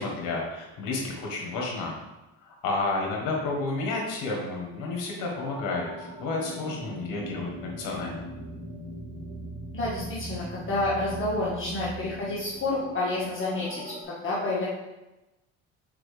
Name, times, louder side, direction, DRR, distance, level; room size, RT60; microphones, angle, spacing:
voice 1, 0.0-2.0 2.4-8.3, left 3 dB, 70° left, -1 dB, 1.8 m, -31 dB
sound 1, 5.3-14.0, right 1 dB, 60° right, 1.7 m, -40 dB
voice 2, 9.7-14.7, left 2 dB, 35° left, -7 dB, 1.7 m, -29 dB
6.0 x 4.7 x 3.5 m, 1.0 s
supercardioid pair, 85°, 33 cm